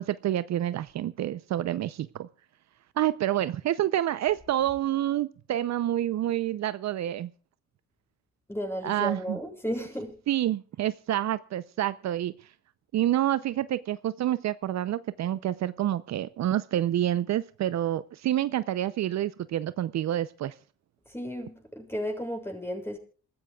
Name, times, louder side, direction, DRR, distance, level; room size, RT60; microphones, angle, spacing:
voice 1, 0.0-2.3 3.0-7.3 8.8-9.4 10.3-12.3 12.9-20.5, right 12 dB, 65° right, 0.7 m, -28 dB
voice 2, 8.5-10.1 21.1-23.0, equal, 10° left, 6.6 m, -34 dB
27.0 x 14.5 x 2.4 m
cardioid pair, 90°, 30 cm